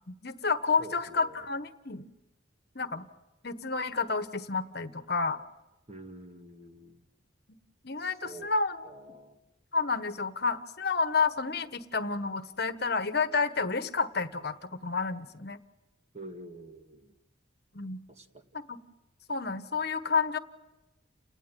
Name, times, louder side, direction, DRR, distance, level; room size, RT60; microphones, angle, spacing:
voice 1, 0.1-2.1 2.7-3.1 3.4-5.4 7.8-8.8 9.7-15.6 17.7-18.0 18.7-18.8 19.3-20.4, left 4 dB, 55° left, 10 dB, 1.4 m, -30 dB
voice 2, 0.8-1.4 5.9-7.0 8.2-8.5 8.8-9.4 16.1-17.1 18.1-18.4, right 1 dB, 35° right, 5 dB, 2.1 m, -47 dB
30.0 x 19.0 x 9.3 m, 0.95 s
head